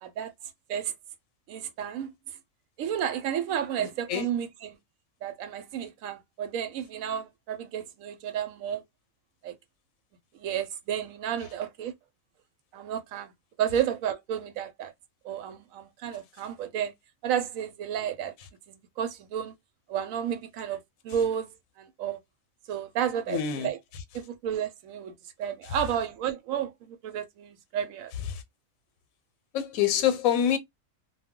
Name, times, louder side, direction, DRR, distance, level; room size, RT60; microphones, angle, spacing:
voice 1, 0.0-0.3 0.7-0.9 1.5-2.1 2.8-4.8 5.2-8.8 9.4-9.5 10.3-11.9 12.7-13.3 13.6-14.9 15.2-16.9 17.2-18.3 18.7-19.5 19.9-22.2 22.7-23.8 24.1-25.1 25.4-28.1, right 9 dB, 80° right, 1.0 m, -32 dB
voice 2, 3.8-4.3 23.3-23.7 28.3-28.4 29.5-30.6, left 9 dB, 85° left, 1.0 m, -26 dB
2.2 x 2.1 x 3.6 m
omnidirectional pair, 1.4 m